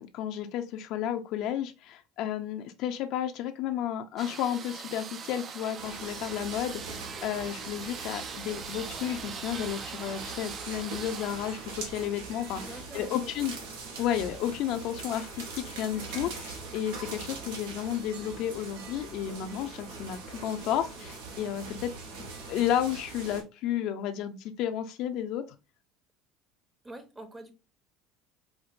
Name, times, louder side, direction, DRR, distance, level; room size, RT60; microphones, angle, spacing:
voice 1, 0.0-12.6 12.9-13.5 14.0-21.9 22.4-25.4, left 10 dB, 65° left, 0.4 m, -32 dB
sound 1, 4.2-12.1, right 6 dB, 35° right, 0.3 m, -42 dB
sound 2, 5.8-23.4, right 4 dB, 85° right, 0.8 m, -42 dB
voice 2, 12.5-13.3 26.8-27.5, right 1 dB, 15° right, 0.7 m, -44 dB
4.4 x 2.1 x 2.5 m
supercardioid pair, 100°, 0 cm